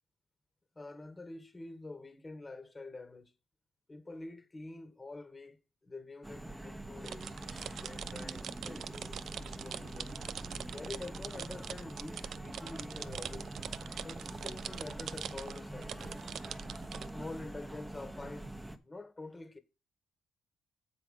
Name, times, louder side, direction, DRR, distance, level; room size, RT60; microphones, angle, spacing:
voice 1, 0.7-3.3 3.9-7.4 7.7-10.2 10.7-13.5 14.0-16.2 17.0-18.6 18.8-19.6, left 2 dB, 20° left, 1.3 m, -47 dB
sound 1, 6.2-18.8, right 1 dB, 10° right, 1.0 m, -45 dB
sound 2, 7.0-17.1, right 9 dB, 65° right, 0.4 m, -43 dB
7.4 x 4.9 x 5.4 m
cardioid pair, 90°, 0 cm